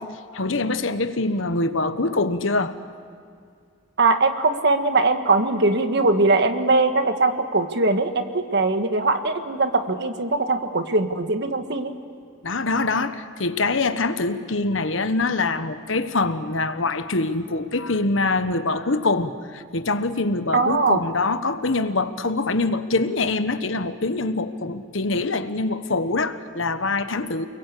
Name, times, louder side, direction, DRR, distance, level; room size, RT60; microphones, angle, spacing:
voice 1, 0.1-2.8 12.4-27.5, left 3 dB, 70° left, 11 dB, 1.3 m, -24 dB
voice 2, 4.0-11.9 20.5-21.0, right 3 dB, 60° right, 8 dB, 1.6 m, -21 dB
29.5 x 22.0 x 8.5 m, 2.2 s
head